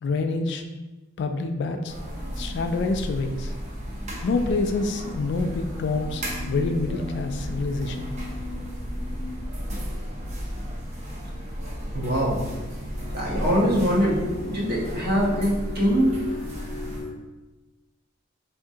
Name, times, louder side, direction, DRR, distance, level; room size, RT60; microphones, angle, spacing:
voice 1, 0.0-0.6 1.2-1.9 2.4-3.5 4.2-8.1 10.2-10.3, left 3 dB, 55° left, 6 dB, 0.3 m, -27 dB
sound 1, 1.9-17.0, equal, 35° right, 0.7 m, -33 dB
sound 2, 11.7-17.1, left 2 dB, 25° left, 0.8 m, -37 dB
voice 2, 11.9-12.4 13.1-16.2, equal, 50° right, -5 dB, 1.0 m, -23 dB
3.5 x 2.8 x 2.7 m, 1.1 s
head